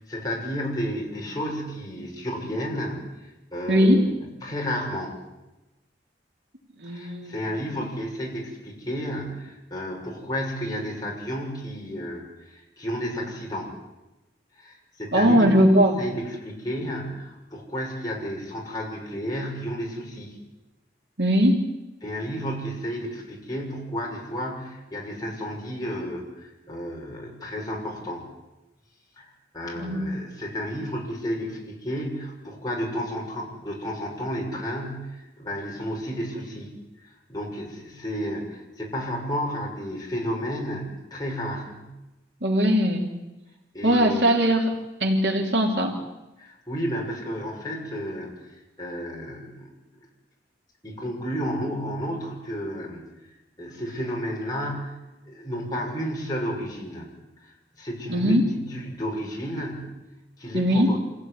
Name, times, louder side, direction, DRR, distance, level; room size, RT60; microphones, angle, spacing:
voice 1, 0.1-3.0 3.5-4.0 4.4-5.1 6.9-13.7 14.6-15.6 16.0-20.4 22.0-28.2 29.2-36.7 37.1-41.9 43.7-44.2 46.4-48.3 48.8-49.7 50.8-53.0 53.6-55.0 55.3-57.1 57.8-59.9 60.4-61.0, equal, 20° left, -2 dB, 6.7 m, -32 dB
voice 2, 3.7-4.1 6.8-7.4 15.1-16.0 21.2-21.7 29.8-30.1 42.4-43.1 43.8-44.7 45.0-45.9 58.1-58.4 60.5-61.0, equal, 85° right, 2 dB, 3.1 m, -20 dB
26.5 x 16.5 x 9.9 m, 1.0 s
head